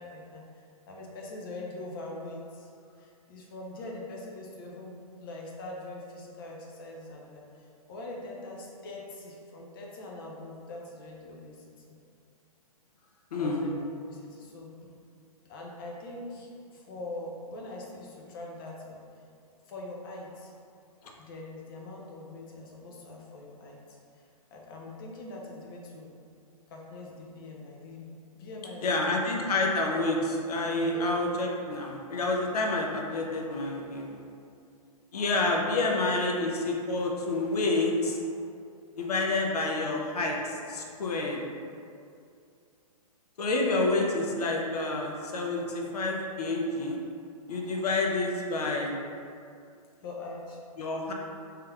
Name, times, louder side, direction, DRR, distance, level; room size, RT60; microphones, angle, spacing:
voice 1, 0.0-11.9 13.0-13.8 14.1-14.7 15.4-19.0 19.7-20.5 21.2-26.2 26.7-29.3 30.7-31.0 35.4-35.8 50.0-50.6, left 2 dB, 35° left, -1 dB, 0.5 m, -43 dB
voice 2, 13.3-13.6 28.8-34.2 35.1-38.2 39.0-41.4 43.4-47.0 47.5-48.9 50.8-51.1, left 2 dB, 80° left, 0 dB, 0.6 m, -28 dB
3.2 x 3.1 x 2.3 m, 2.4 s
hypercardioid pair, 150°, 19 cm